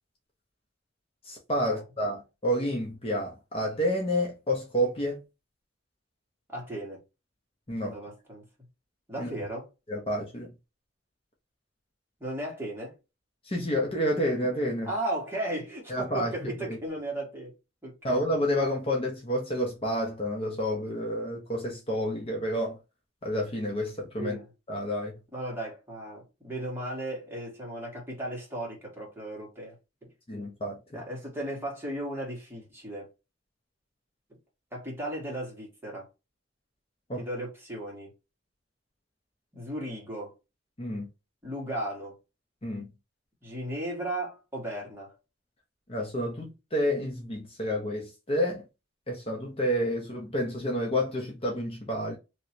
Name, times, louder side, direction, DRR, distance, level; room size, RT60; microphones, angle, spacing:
voice 1, 1.3-5.2 7.7-8.0 9.2-9.3 9.9-10.5 13.4-14.9 15.9-16.8 18.0-22.8 23.2-24.4 24.7-25.1 30.3-30.8 37.1-37.2 40.8-41.1 42.6-42.9 45.9-48.6 49.1-52.2, equal, 30° left, 0.9 m, -29 dB
voice 2, 6.5-7.0 7.8-8.4 9.1-9.7 12.2-12.9 14.8-17.5 17.8-18.2 24.2-24.5 25.3-29.8 30.0-30.1 30.9-33.1 34.7-36.1 37.2-38.1 39.5-40.3 41.4-42.2 43.4-45.2, right 1 dB, 10° right, 1.6 m, -36 dB
3.1 x 3.0 x 2.8 m
head